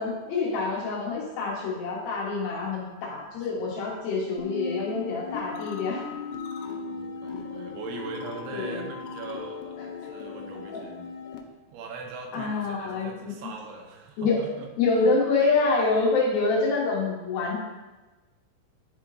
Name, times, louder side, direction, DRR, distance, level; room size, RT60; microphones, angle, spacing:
voice 1, 0.0-6.0 8.5-8.9 12.3-13.5 14.2-14.4 14.8-17.6, left 3 dB, 70° left, -4 dB, 2.9 m, -26 dB
voice 2, 3.3-3.6 6.7-11.0 11.7-14.7, right 4 dB, 80° right, 2 dB, 2.9 m, -41 dB
sound 1, 4.4-11.4, left 5 dB, 85° left, 2.8 m, -37 dB
10.5 x 3.7 x 3.7 m, 1.2 s
omnidirectional pair, 4.6 m